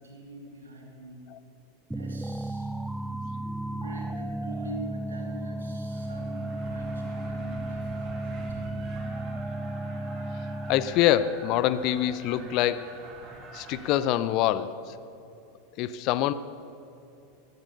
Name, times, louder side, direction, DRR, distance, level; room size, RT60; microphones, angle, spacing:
voice 1, 0.0-1.3 1.9-2.7 3.3-3.4 3.7-8.9, right 2 dB, 80° right, 0 dB, 3.0 m, -44 dB
sound 1, 1.9-11.1, right 1 dB, 5° right, 0.4 m, -34 dB
sound 2, 5.9-14.0, right 2 dB, 30° right, 3.3 m, -45 dB
voice 2, 10.7-13.0 13.5-14.9 15.8-16.3, left 12 dB, 45° left, 15 dB, 0.6 m, -25 dB
15.0 x 10.5 x 6.8 m, 2.9 s
figure-of-eight pair, 90°, 0 cm